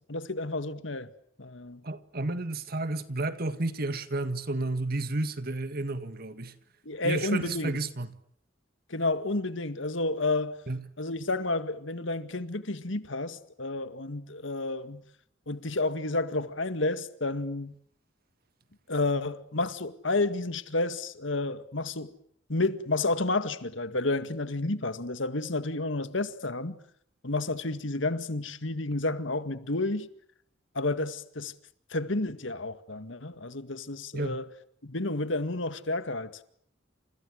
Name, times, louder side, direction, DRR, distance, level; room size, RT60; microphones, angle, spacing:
voice 1, 0.1-1.1 1.4-1.8 6.9-7.8 8.9-10.6 11.0-15.0 15.5-17.7 18.9-22.1 22.5-26.8 27.2-30.1 30.8-31.5 31.9-34.5 34.8-36.4, left 2 dB, 70° left, 2.0 m, -30 dB
voice 2, 1.8-6.6 7.0-8.2 10.7-10.9 34.1-34.4, right 2 dB, 50° right, 1.9 m, -31 dB
29.5 x 28.0 x 6.5 m
head